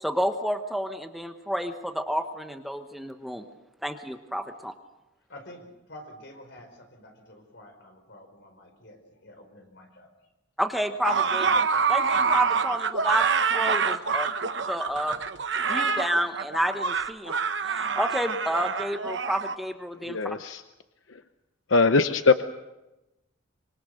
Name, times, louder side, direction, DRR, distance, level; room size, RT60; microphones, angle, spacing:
voice 1, 0.0-3.4 3.8-4.7 10.6-11.6 11.9-13.3 13.5-14.3 14.7-15.2 15.7-17.3 17.6-20.4, equal, ahead, 6 dB, 1.1 m, -30 dB
voice 2, 5.3-10.3, left 1 dB, 65° left, 5 dB, 4.8 m, -49 dB
sound 1, 11.0-19.5, right 5 dB, 65° right, 1.0 m, -26 dB
voice 3, 20.0-20.6 21.1-21.2 21.7-22.4, left 4 dB, 85° left, 10 dB, 0.8 m, -22 dB
25.5 x 24.0 x 6.6 m, 0.98 s
head